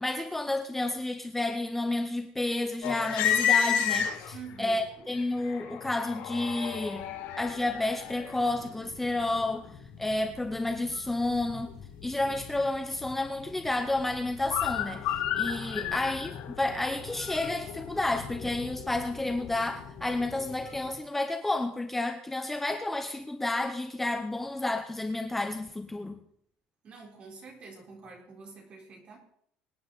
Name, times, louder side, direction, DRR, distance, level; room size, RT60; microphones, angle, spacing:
voice 1, 0.0-7.1 7.4-9.7 10.0-11.7 12.0-26.2, left 2 dB, 5° left, 0.8 m, -31 dB
sound 1, 2.8-4.6 5.1-20.9, left 9 dB, 75° left, 5.7 m, -34 dB
voice 2, 4.3-5.1 15.7-16.1 26.8-29.2, right 4 dB, 35° right, 4.0 m, -47 dB
25.0 x 9.4 x 4.1 m
cardioid pair, 160°, 3 cm